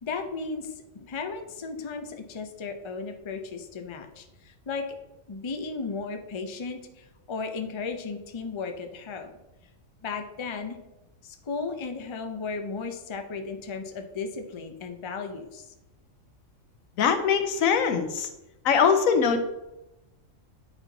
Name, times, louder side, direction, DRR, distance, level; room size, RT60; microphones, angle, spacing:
voice 1, 0.0-4.9 5.3-9.4 10.0-10.8 11.2-15.7, left 4 dB, 35° left, 5 dB, 0.5 m, -35 dB
voice 2, 17.0-18.3 18.6-19.4, left 6 dB, 90° left, 8 dB, 1.2 m, -22 dB
8.8 x 4.5 x 3.9 m, 0.98 s
omnidirectional pair, 1.4 m